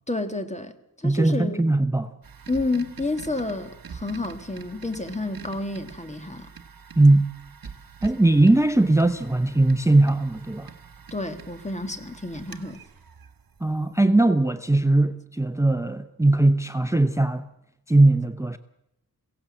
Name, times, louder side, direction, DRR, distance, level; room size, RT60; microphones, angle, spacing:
voice 1, 0.1-1.7 2.5-6.5 11.1-12.8, left 2 dB, 20° left, 1.8 m, -30 dB
voice 2, 1.0-2.1 7.0-7.3 8.0-10.7 13.6-17.4 17.9-18.6, right 2 dB, 10° right, 0.7 m, -19 dB
sound 1, 2.2-14.0, right 6 dB, 65° right, 1.3 m, -45 dB
22.5 x 16.5 x 7.5 m
wide cardioid pair, 100°, 37 cm